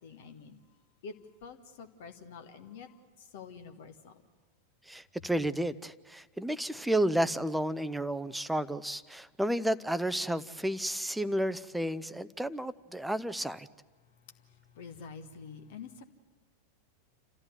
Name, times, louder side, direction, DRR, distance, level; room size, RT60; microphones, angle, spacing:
voice 1, 0.0-0.6 1.0-1.1 1.4-4.1 14.7-16.0, left 5 dB, 50° left, 7 dB, 1.4 m, -47 dB
voice 2, 4.9-13.7, right 1 dB, 5° right, 16 dB, 0.6 m, -31 dB
28.5 x 14.5 x 9.5 m, 1.4 s
figure-of-eight pair, 90°, 0 cm